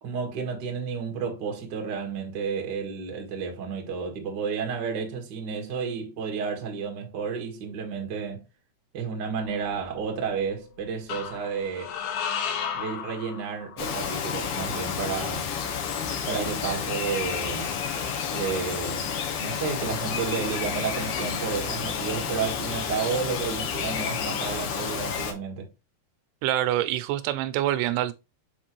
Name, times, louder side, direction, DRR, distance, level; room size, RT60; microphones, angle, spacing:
voice 1, 0.0-8.4 8.9-12.0 12.7-15.5 16.3-17.7 18.3-25.7, right 6 dB, 60° right, 1.1 m, -31 dB
sound 1, 9.4-10.2 11.1-14.0, left 7 dB, 80° left, 3.3 m, -34 dB
Bird vocalization bird call bird song, 13.8-25.3, left 7 dB, 65° left, 2.5 m, -30 dB
voice 2, 26.4-28.1, right 13 dB, 85° right, 2.7 m, -25 dB
7.4 x 4.4 x 3.1 m
omnidirectional pair, 4.7 m